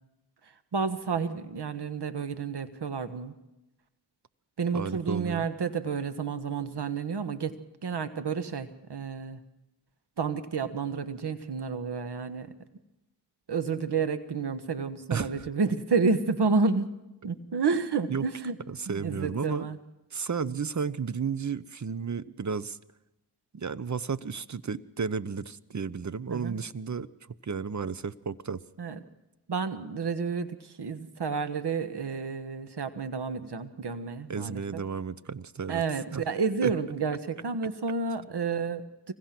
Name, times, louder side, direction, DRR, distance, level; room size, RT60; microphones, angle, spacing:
voice 1, 0.7-3.3 4.6-7.5 7.8-9.4 10.2-12.5 13.5-16.9 17.2-18.6 18.9-19.8 20.5-20.6 26.3-26.6 28.8-29.0 29.5-34.8 35.7-39.1, right 5 dB, 70° right, 10 dB, 1.6 m, -30 dB
voice 2, 4.7-5.4 15.1-15.5 18.1-18.2 18.7-19.7 20.1-22.8 23.5-27.1 27.4-28.6 34.3-35.8 36.1-36.2 36.6-36.7, right 6 dB, 45° right, 16 dB, 0.9 m, -33 dB
25.0 x 21.5 x 6.1 m, 0.97 s
cardioid pair, 40°, 41 cm